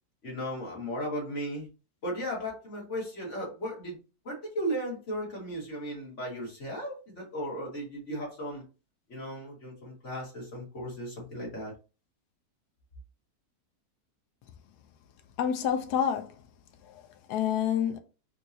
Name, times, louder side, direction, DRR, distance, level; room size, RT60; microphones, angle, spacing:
voice 1, 0.2-1.7 2.0-4.0 4.2-8.6 9.1-11.7, equal, 50° left, 1.9 m, -36 dB
voice 2, 15.4-16.4 16.8-18.0, left 8 dB, 85° left, 1.1 m, -29 dB
3.8 x 2.8 x 2.6 m
omnidirectional pair, 1.7 m